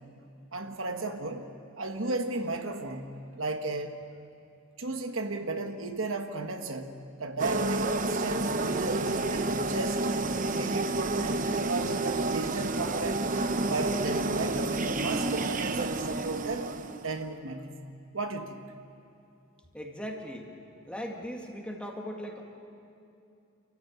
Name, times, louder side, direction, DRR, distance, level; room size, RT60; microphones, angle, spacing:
voice 1, 0.5-1.5 1.8-3.9 4.8-10.1 10.5-13.3 13.6-16.7 17.0-17.9 18.1-18.7, right 2 dB, 65° right, 5 dB, 1.4 m, -34 dB
sound 1, 7.4-17.2, right 2 dB, 40° right, 0.9 m, -30 dB
voice 2, 19.7-20.5 20.9-22.4, equal, 5° left, 1 dB, 2.2 m, -38 dB
28.5 x 15.0 x 9.3 m, 2.6 s
head